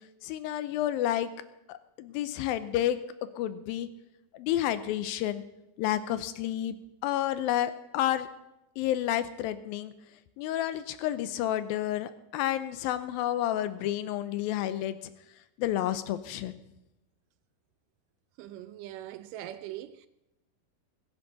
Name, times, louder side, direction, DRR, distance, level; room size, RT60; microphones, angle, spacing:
voice 1, 0.2-1.3 1.7-3.0 3.4-3.9 4.4-5.4 5.8-6.8 7.0-8.3 8.8-9.9 10.4-15.0 15.6-16.6, left 12 dB, 80° left, 2.4 m, -30 dB
voice 2, 18.4-20.1, right 13 dB, 85° right, 1.9 m, -41 dB
21.0 x 10.5 x 4.0 m
omnidirectional pair, 4.3 m